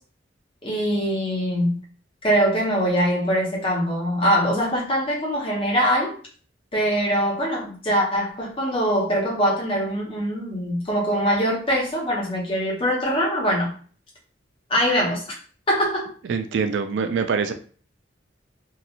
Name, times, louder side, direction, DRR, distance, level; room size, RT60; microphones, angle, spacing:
voice 1, 0.6-1.8 2.2-6.1 6.7-13.7 14.7-15.2 15.7-16.1, equal, 30° left, -4 dB, 1.0 m, -23 dB
voice 2, 16.3-17.5, right 5 dB, 65° right, 8 dB, 0.3 m, -24 dB
2.9 x 2.4 x 2.4 m, 0.42 s
head